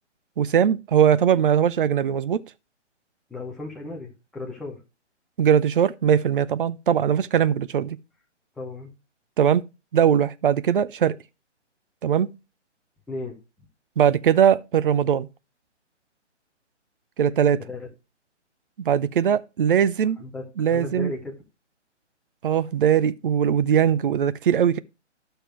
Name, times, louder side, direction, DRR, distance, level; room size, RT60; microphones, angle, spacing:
voice 1, 0.4-2.4 5.4-8.0 9.4-9.7 9.9-11.2 12.0-12.3 14.0-15.3 17.2-17.6 18.8-20.2 20.6-21.1 22.4-24.8, right 8 dB, 45° right, 0.7 m, -20 dB
voice 2, 3.3-4.8 8.6-8.9 13.1-13.7 17.6-17.9 20.2-20.4 20.7-21.3, left 2 dB, ahead, 0.5 m, -35 dB
12.0 x 6.7 x 3.0 m
figure-of-eight pair, 140°, 36 cm